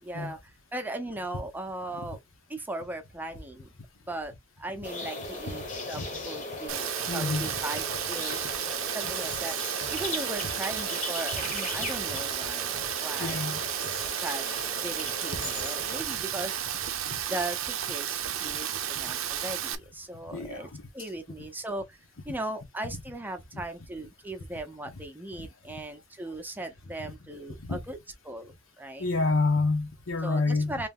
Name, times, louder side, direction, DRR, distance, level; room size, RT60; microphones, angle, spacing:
voice 1, 0.0-2.2 2.5-3.7 4.1-8.5 8.9-9.6 9.9-13.5 14.2-14.5 14.8-16.8 17.3-20.7 20.9-22.0 22.2-28.0 28.2-29.1 30.2-30.9, right 1 dB, 10° right, 0.6 m, -38 dB
sound 1, 4.8-16.0, left 2 dB, 40° left, 1.0 m, -38 dB
Rain, 6.7-19.8, right 10 dB, 75° right, 0.5 m, -33 dB
voice 2, 7.1-7.5 11.8-11.9 13.2-13.6 15.4-15.5 17.1-17.2 20.3-20.7 27.6-27.8 29.0-30.7, left 3 dB, 80° left, 1.1 m, -28 dB
3.1 x 2.8 x 3.5 m
head